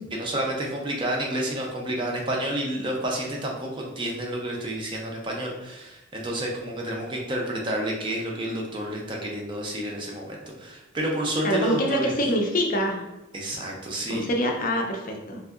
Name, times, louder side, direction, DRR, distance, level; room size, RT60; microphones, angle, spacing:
voice 1, 0.1-12.2 13.3-14.3, right 1 dB, 25° right, -1 dB, 0.4 m, -30 dB
voice 2, 11.4-13.0 14.1-15.4, equal, 40° left, 2 dB, 0.5 m, -25 dB
3.3 x 2.7 x 2.4 m, 1.0 s
head